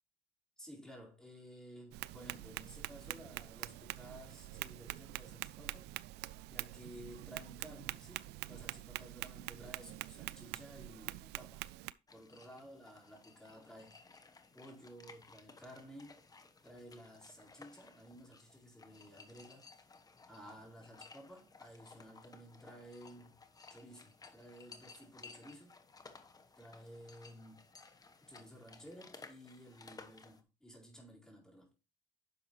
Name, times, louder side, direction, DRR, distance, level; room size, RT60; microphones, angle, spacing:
voice 1, 0.6-5.9 6.5-11.6 12.1-14.0 14.5-16.2 16.6-19.7 20.3-23.3 23.7-25.7 26.6-27.7 28.2-31.7, equal, 5° left, 4.3 m, -54 dB
Tap, 1.9-11.9, right 17 dB, 85° right, 0.4 m, -45 dB
sound 1, 12.1-30.4, left 4 dB, 20° left, 1.1 m, -58 dB
10.0 x 6.5 x 3.0 m
cardioid pair, 110°, 17 cm